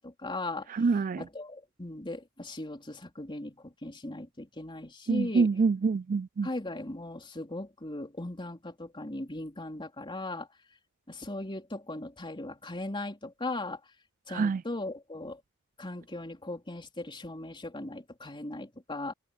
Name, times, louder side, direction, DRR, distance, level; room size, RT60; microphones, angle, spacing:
voice 1, 0.0-0.8 1.2-5.5 6.4-10.5 11.1-13.8 14.3-15.4 15.8-19.1, left 2 dB, 25° left, 3.9 m, -38 dB
voice 2, 0.7-1.2 5.1-6.5 14.3-14.6, right 4 dB, 40° right, 0.4 m, -26 dB
head